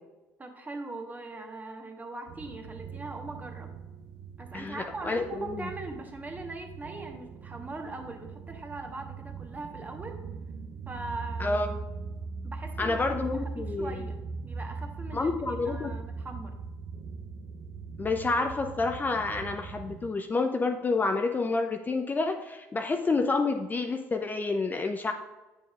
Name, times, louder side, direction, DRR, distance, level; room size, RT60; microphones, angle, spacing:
voice 1, 0.4-3.7 4.4-10.2 10.9-11.6 12.4-14.2 14.4-16.5, right 2 dB, 25° right, 4 dB, 1.2 m, -41 dB
sound 1, 2.3-20.1, right 4 dB, 60° right, 0.7 m, -40 dB
voice 2, 4.5-5.7 11.4-11.8 12.8-14.1 15.1-15.9 18.0-25.1, left 3 dB, 25° left, 5 dB, 0.5 m, -29 dB
7.1 x 6.8 x 2.4 m, 1.1 s
hypercardioid pair, 70°, 7 cm